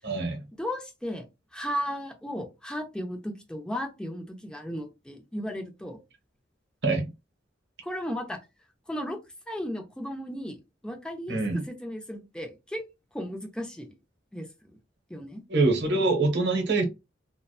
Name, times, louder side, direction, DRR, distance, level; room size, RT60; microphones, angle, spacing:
voice 1, 0.0-0.4 6.8-7.1 11.3-11.6 15.5-16.8, right 3 dB, 60° right, 0.8 m, -24 dB
voice 2, 0.6-1.2 1.5-6.0 7.8-8.4 8.9-10.6 10.8-12.8 13.1-13.9 14.3-14.8 15.1-15.4, equal, 5° left, 0.5 m, -35 dB
2.7 x 2.1 x 2.3 m
head